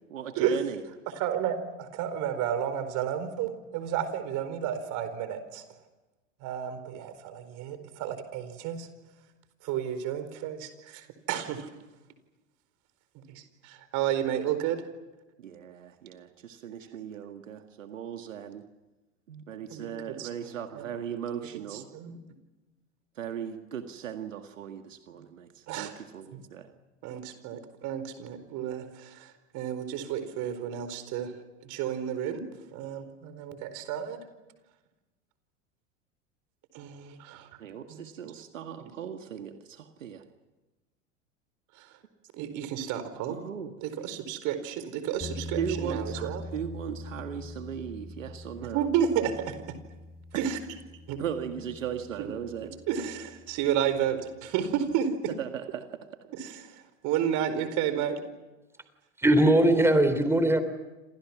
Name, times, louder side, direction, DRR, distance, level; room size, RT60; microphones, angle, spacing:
voice 1, 0.1-0.8 15.4-18.6 19.3-21.9 23.2-26.7 37.6-40.2 43.3-43.7 45.6-48.8 50.3-50.5 51.2-52.7 55.4-55.9, right 8 dB, 75° right, 6 dB, 1.9 m, -37 dB
voice 2, 1.2-5.6 6.4-8.9 9.6-11.7 13.1-14.8 19.7-20.3 20.7-20.9 21.5-22.2 25.7-25.9 26.3-26.4 27.0-31.3 31.6-32.4 32.7-34.2 36.7-37.5 37.9-38.0 38.8-38.9 41.8-42.0 42.3-43.4 43.8-46.4 48.7-49.6 50.3-50.6 51.1-51.2 52.2-52.3 52.6-55.1 56.3-58.2, right 9 dB, 50° right, 10 dB, 4.6 m, -32 dB
sound 1, 45.2-54.1, left 1 dB, 25° left, 4.9 m, -43 dB
voice 3, 59.2-60.6, right 1 dB, 5° right, 10 dB, 3.6 m, -20 dB
29.0 x 27.5 x 6.1 m, 1.1 s
hypercardioid pair, 85°, 38 cm